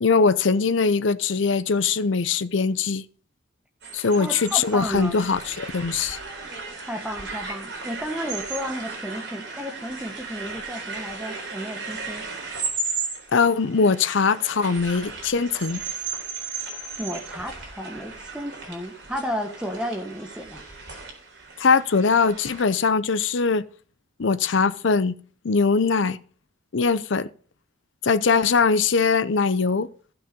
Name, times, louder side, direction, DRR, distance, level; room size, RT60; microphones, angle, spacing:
voice 1, 0.0-3.0 3.9-6.2 13.3-15.8 21.6-23.7 24.2-25.1 25.4-26.2 26.7-27.3 28.0-29.9, left 5 dB, 70° left, 0.6 m, -21 dB
sound 1, 3.8-22.6, right 4 dB, 60° right, 3.9 m, -35 dB
voice 2, 4.2-5.2 6.9-12.2 17.0-20.6, equal, 5° right, 1.4 m, -33 dB
15.0 x 5.8 x 5.2 m
head